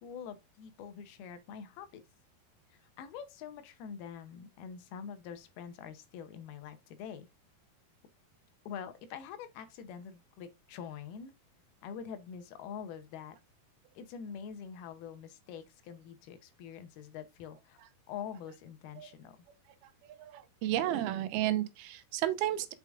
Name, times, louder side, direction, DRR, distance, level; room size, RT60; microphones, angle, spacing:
voice 1, 0.0-2.0 2.7-7.3 8.7-11.3 11.8-13.4 14.0-17.8 18.1-19.4, left 7 dB, 80° left, 2.7 m, -45 dB
voice 2, 20.1-22.7, right 13 dB, 85° right, 2.4 m, -32 dB
6.7 x 4.9 x 3.4 m
omnidirectional pair, 4.6 m